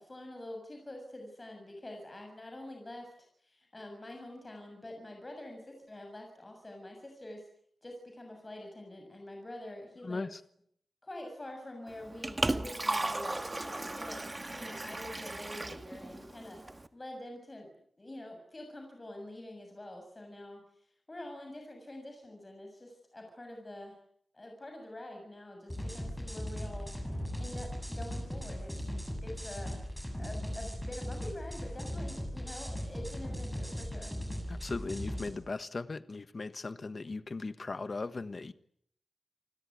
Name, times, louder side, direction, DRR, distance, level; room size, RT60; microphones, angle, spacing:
voice 1, 0.0-3.1 3.4-7.5 7.8-10.3 11.0-16.6 16.9-17.7 18.0-24.0 24.3-28.7 29.2-29.8 30.2-34.2, left 1 dB, 25° left, 3 dB, 7.0 m, -46 dB
voice 2, 10.0-10.4 34.5-38.5, left 3 dB, 40° left, 12 dB, 1.4 m, -38 dB
Liquid, 11.9-16.9, right 2 dB, 25° right, 1.6 m, -36 dB
sound 1, 25.7-35.3, equal, 5° left, 7.6 m, -38 dB
29.0 x 20.5 x 9.5 m, 0.68 s
wide cardioid pair, 140°, 0 cm